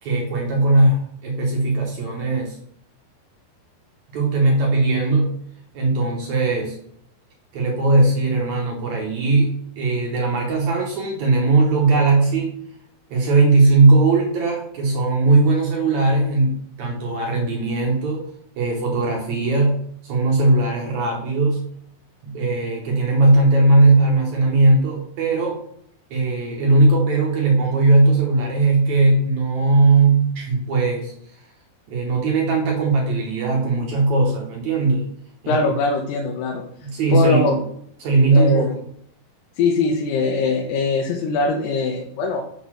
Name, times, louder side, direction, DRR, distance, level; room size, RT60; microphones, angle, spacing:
voice 1, 0.0-2.6 4.1-5.3 5.7-6.8 7.5-12.5 13.1-18.2 18.6-21.7 22.2-25.6 26.1-31.1 31.9-35.1 35.4-35.8 36.8-37.6 38.0-38.7, right 2 dB, 70° right, -1 dB, 1.8 m, -18 dB
voice 2, 35.5-36.7 37.1-37.6 38.3-38.8 39.6-42.4, left 4 dB, 80° left, 0 dB, 2.9 m, -21 dB
6.9 x 4.0 x 6.1 m, 0.67 s
omnidirectional pair, 4.8 m